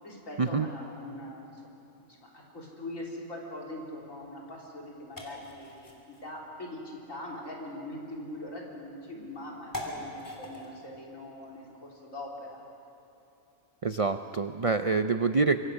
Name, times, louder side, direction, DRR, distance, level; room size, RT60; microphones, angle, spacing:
voice 1, 0.0-1.5 2.2-12.6, left 1 dB, 65° left, -2 dB, 4.0 m, -42 dB
sound 1, 3.9-12.5, left 1 dB, 15° left, 3.2 m, -46 dB
voice 2, 13.8-15.6, right 4 dB, 60° right, 9 dB, 0.3 m, -26 dB
26.0 x 23.5 x 6.4 m, 2.8 s
omnidirectional pair, 1.5 m